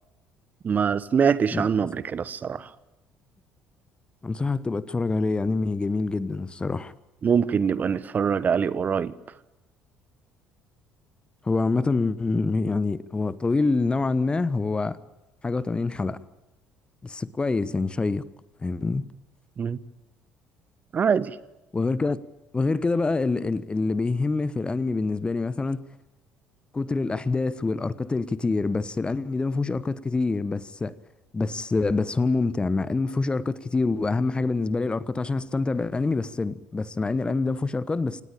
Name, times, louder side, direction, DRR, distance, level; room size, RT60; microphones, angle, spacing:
voice 1, 0.6-2.7 7.2-9.1 19.6-19.8 20.9-21.3, right 6 dB, 40° right, 1.1 m, -23 dB
voice 2, 1.5-1.9 4.2-6.9 11.4-15.0 15.4-16.2 17.0-18.2 18.6-19.0 21.7-22.2 22.5-25.8 26.7-30.9 31.3-38.2, left 3 dB, 20° left, 1.3 m, -26 dB
27.0 x 19.0 x 8.8 m
figure-of-eight pair, 55°, 5 cm